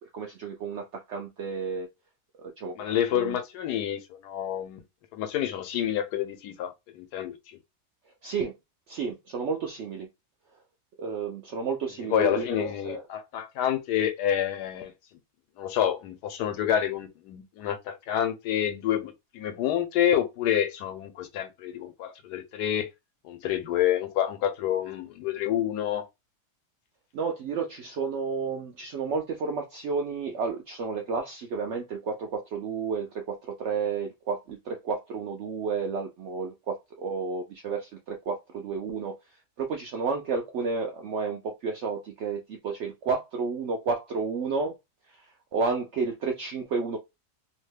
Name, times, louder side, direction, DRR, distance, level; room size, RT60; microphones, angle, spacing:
voice 1, 0.1-1.9 2.6-2.7 3.1-3.4 8.2-8.5 8.9-10.1 11.0-13.0 27.1-39.1 39.6-44.7 45.1-45.3 45.5-47.0, right 5 dB, 75° right, 0.6 m, -31 dB
voice 2, 2.8-4.8 5.1-7.3 12.1-14.9 15.6-22.9 23.2-26.0, left 10 dB, 80° left, 1.2 m, -28 dB
2.9 x 2.1 x 3.2 m
omnidirectional pair, 1.7 m